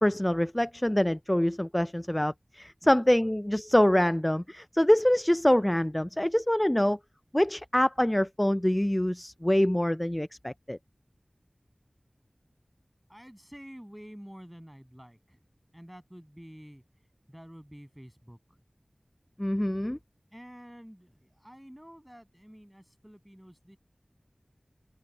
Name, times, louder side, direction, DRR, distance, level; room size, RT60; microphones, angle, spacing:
voice 1, 0.0-7.0 7.3-10.8 19.4-20.0, left 1 dB, 15° left, 0.3 m, -25 dB
voice 2, 2.8-3.3 13.1-15.4 15.7-16.8 17.3-18.6 20.3-23.8, equal, 10° right, 7.7 m, -49 dB
open air
wide cardioid pair, 45°, 0 cm